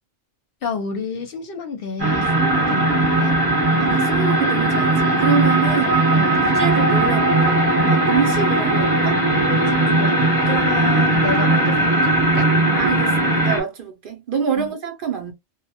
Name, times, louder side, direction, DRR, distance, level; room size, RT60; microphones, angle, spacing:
voice 1, 0.6-3.4 6.1-6.5 9.5-10.2 10.4-12.5 14.5-14.7, left 4 dB, 60° left, 0.7 m, -30 dB
sound 1, 2.0-13.6, right 2 dB, 25° right, 0.7 m, -18 dB
voice 2, 3.8-6.0 6.5-9.2 12.7-15.3, right 7 dB, 60° right, 0.7 m, -26 dB
2.1 x 2.1 x 2.8 m
omnidirectional pair, 1.2 m